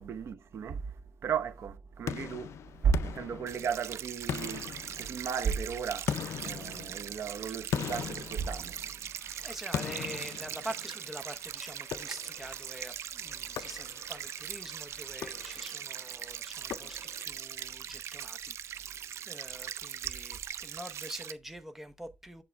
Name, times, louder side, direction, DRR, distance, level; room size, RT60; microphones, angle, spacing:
voice 1, 0.0-8.9, right 6 dB, 65° right, 0.8 m, -34 dB
sound 1, 2.1-3.9 4.3-5.4 6.1-9.1 9.7-11.1 11.9-12.5 13.6-14.3 15.1-15.9 16.7-17.4, left 9 dB, 80° left, 0.3 m, -39 dB
sound 2, 3.5-21.3, right 10 dB, 80° right, 0.4 m, -41 dB
sound 3, 9.0-17.3, left 2 dB, 15° left, 2.1 m, -59 dB
voice 2, 9.4-22.4, right 1 dB, 5° right, 0.8 m, -45 dB
7.5 x 4.8 x 3.3 m
wide cardioid pair, 135°, 5 cm